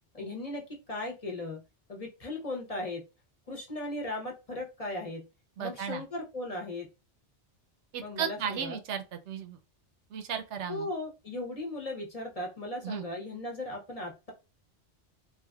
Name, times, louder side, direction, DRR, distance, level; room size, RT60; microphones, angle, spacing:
voice 1, 0.1-1.6 1.9-3.0 3.5-5.2 5.6-6.9 8.0-8.8 10.7-14.3, left 2 dB, 35° left, 0.8 m, -37 dB
voice 2, 5.6-6.0 7.9-9.6 10.1-10.9 12.8-13.1, right 8 dB, 90° right, 0.9 m, -35 dB
3.3 x 2.4 x 2.2 m
omnidirectional pair, 1.2 m